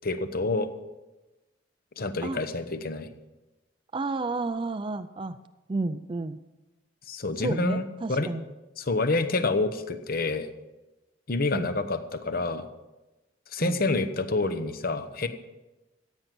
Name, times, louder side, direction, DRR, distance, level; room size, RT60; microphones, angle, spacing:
voice 1, 0.0-0.7 2.0-3.1 7.1-8.3 8.8-10.5 11.3-12.6 13.5-15.3, left 3 dB, 50° left, 10 dB, 0.9 m, -28 dB
voice 2, 3.9-5.4 5.7-6.4 7.4-8.4 11.5-11.7 13.6-13.8, right 3 dB, 25° right, 9 dB, 0.4 m, -31 dB
15.0 x 9.3 x 6.0 m, 1.1 s
head